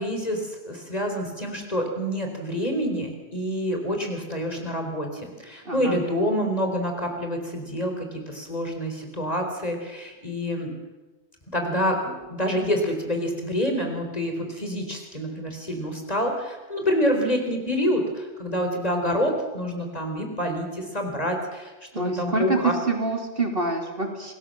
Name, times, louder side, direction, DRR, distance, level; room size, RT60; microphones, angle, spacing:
voice 1, 0.0-10.7 11.5-22.7, equal, 30° left, 3 dB, 4.2 m, -27 dB
voice 2, 5.7-6.0 21.9-24.3, right 3 dB, 50° right, 3 dB, 3.5 m, -26 dB
28.5 x 20.0 x 7.7 m, 1.2 s
omnidirectional pair, 1.2 m